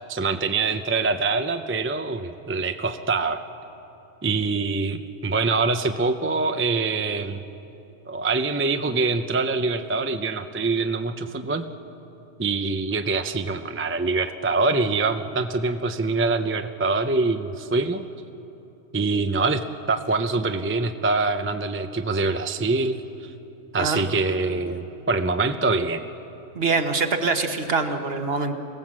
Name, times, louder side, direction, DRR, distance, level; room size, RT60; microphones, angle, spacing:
voice 1, 0.1-3.4 4.2-7.4 8.1-11.6 12.4-18.1 18.9-23.0 23.7-26.1, right 3 dB, 15° right, 8 dB, 0.4 m, -24 dB
voice 2, 26.5-28.5, right 4 dB, 50° right, 6 dB, 1.4 m, -24 dB
25.0 x 17.0 x 7.5 m, 2.9 s
omnidirectional pair, 1.3 m